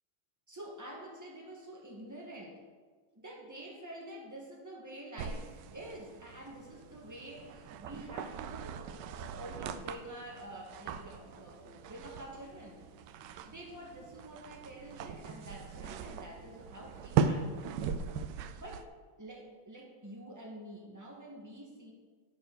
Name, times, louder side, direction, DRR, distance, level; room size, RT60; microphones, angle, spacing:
voice 1, 0.5-2.6 3.1-12.8 13.5-17.9 18.6-18.8 19.2-21.9, right 1 dB, 10° right, -1 dB, 1.4 m, -48 dB
sound 1, 5.2-18.9, right 6 dB, 75° right, 1.1 m, -39 dB
11.5 x 4.4 x 6.2 m, 1.5 s
omnidirectional pair, 2.2 m